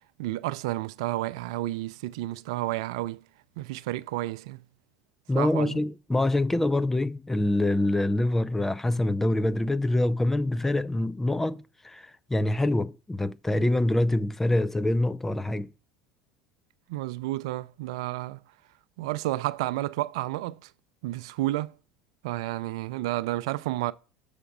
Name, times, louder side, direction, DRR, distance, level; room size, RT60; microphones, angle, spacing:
voice 1, 0.2-3.2 3.6-4.6 5.3-5.8 16.9-18.4 19.0-20.7 21.0-21.7 22.2-23.9, right 17 dB, 75° right, 0.4 m, -31 dB
voice 2, 5.3-15.7, left 1 dB, 10° left, 0.4 m, -25 dB
6.8 x 5.1 x 5.2 m
hypercardioid pair, 85°, 3 cm